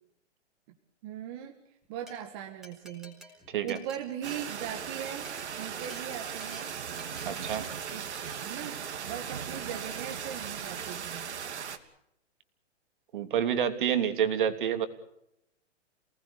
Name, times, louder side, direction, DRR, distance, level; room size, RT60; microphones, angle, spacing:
voice 1, 1.0-1.6 1.9-5.3 5.6-6.7 7.9-8.1 8.4-11.3, right 10 dB, 20° right, 3 dB, 1.7 m, -39 dB
Glass, 1.8-2.1 2.6-4.9 5.2-5.4 5.8-6.0 6.4-6.6 7.0-7.2 7.6-7.8 8.1-8.4, equal, ahead, 4.1 m, -50 dB
voice 2, 3.5-3.8 7.2-7.6 13.1-14.9, right 9 dB, 45° right, 8 dB, 3.1 m, -28 dB
sound 1, 4.2-11.8, right 7 dB, 65° right, 3.0 m, -38 dB
29.0 x 19.0 x 6.8 m, 0.79 s
hypercardioid pair, 175°, 36 cm